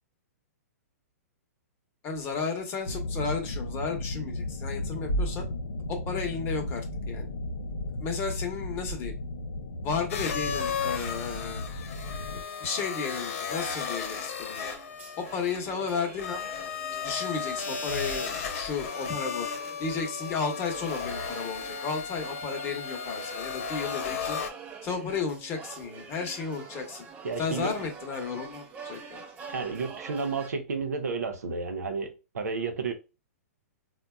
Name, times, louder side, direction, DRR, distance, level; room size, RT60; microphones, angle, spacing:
voice 1, 2.0-5.5 5.9-7.3 8.0-9.1 9.8-11.6 12.3-14.6 15.2-16.5 17.0-19.5 19.8-24.4 24.8-27.0 27.4-29.2, left 5 dB, 30° left, 0.9 m, -33 dB
sound 1, 2.8-12.4, left 1 dB, 85° left, 0.6 m, -34 dB
sound 2, 10.1-24.5, left 6 dB, 55° left, 0.9 m, -35 dB
sound 3, 13.3-30.5, right 5 dB, 15° right, 0.5 m, -46 dB
voice 2, 27.2-27.7 29.4-32.9, right 4 dB, 85° right, 0.7 m, -32 dB
3.9 x 2.2 x 2.2 m
hypercardioid pair, 135°, 8 cm